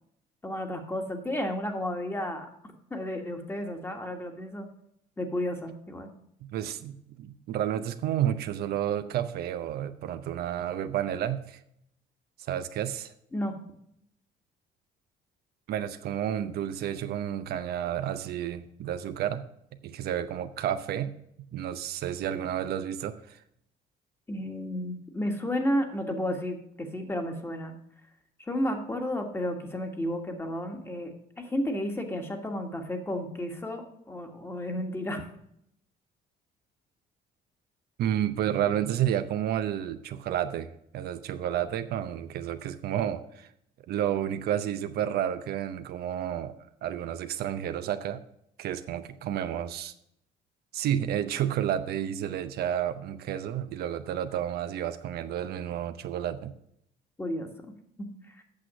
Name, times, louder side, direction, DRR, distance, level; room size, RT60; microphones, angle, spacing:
voice 1, 0.4-2.5 2.9-4.7 5.2-6.1 13.3-13.6 24.3-27.7 28.5-35.3 57.2-57.5 58.0-58.4, left 1 dB, 15° left, 4 dB, 1.6 m, -32 dB
voice 2, 6.4-11.6 12.4-13.1 15.7-19.4 19.8-21.1 21.5-23.4 38.0-43.5 43.9-46.6 46.8-48.2 48.6-49.9 50.7-56.5, right 10 dB, 70° right, 10 dB, 0.7 m, -31 dB
8.6 x 6.3 x 6.2 m, 0.73 s
cardioid pair, 110°, 17 cm